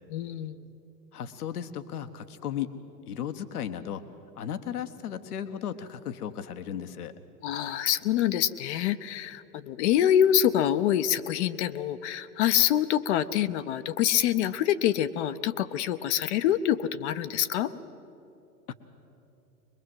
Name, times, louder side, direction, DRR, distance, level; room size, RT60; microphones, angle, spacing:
voice 1, 0.1-0.6 7.4-17.7, left 11 dB, 45° left, 11 dB, 0.8 m, -26 dB
voice 2, 1.1-2.8 3.1-4.0 4.4-7.1 18.7-18.8, left 9 dB, 70° left, 10 dB, 1.3 m, -35 dB
22.5 x 22.0 x 7.8 m, 2.8 s
hypercardioid pair, 105°, 47 cm